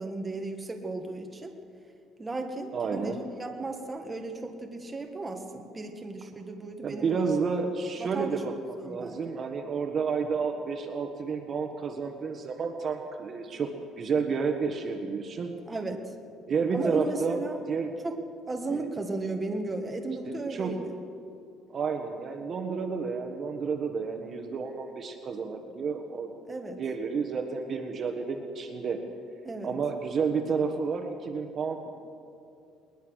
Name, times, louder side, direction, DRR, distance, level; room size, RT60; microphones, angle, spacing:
voice 1, 0.0-1.5 2.2-7.3 8.0-9.2 15.7-16.0 16.7-17.6 18.0-18.1 18.5-20.9 26.5-26.8 29.4-29.7, right 2 dB, 15° right, 3 dB, 1.7 m, -35 dB
voice 2, 2.7-3.2 6.8-13.7 14.0-15.5 16.5-17.9 18.7-18.9 20.2-20.7 21.7-26.3 26.8-29.0 29.6-31.9, right 5 dB, 40° right, 5 dB, 1.4 m, -30 dB
21.0 x 20.5 x 6.4 m, 2.6 s
cardioid pair, 140°, 0 cm